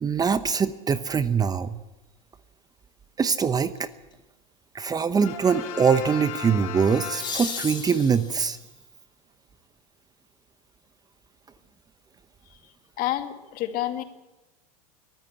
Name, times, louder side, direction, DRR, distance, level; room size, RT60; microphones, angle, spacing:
voice 1, 0.0-1.8 3.2-3.9 4.7-8.6, right 6 dB, 20° right, 13 dB, 0.8 m, -23 dB
sound 1, 3.8-4.1 6.8-8.7 11.6-11.7, left 5 dB, 20° left, 5.4 m, -35 dB
Brass instrument, 5.2-7.9, left 8 dB, 65° left, 5.2 m, -37 dB
voice 2, 13.0-14.0, left 13 dB, 50° left, 7 dB, 2.3 m, -28 dB
23.0 x 13.5 x 8.8 m, 1.1 s
hypercardioid pair, 105°, 19 cm